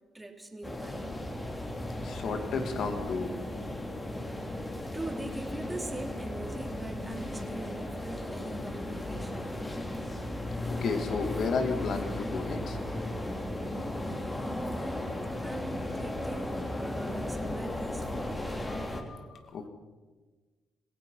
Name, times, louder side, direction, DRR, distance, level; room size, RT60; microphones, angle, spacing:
voice 1, 0.1-1.2 4.9-9.8 13.9-18.4, right 1 dB, 10° right, 3 dB, 3.2 m, -42 dB
sound 1, 0.6-19.0, left 1 dB, 20° left, 3.2 m, -35 dB
voice 2, 2.0-3.3 10.7-12.8 18.7-19.7, left 4 dB, 65° left, 6 dB, 2.8 m, -33 dB
26.0 x 17.0 x 5.8 m, 1.3 s
cardioid pair, 90°, 0 cm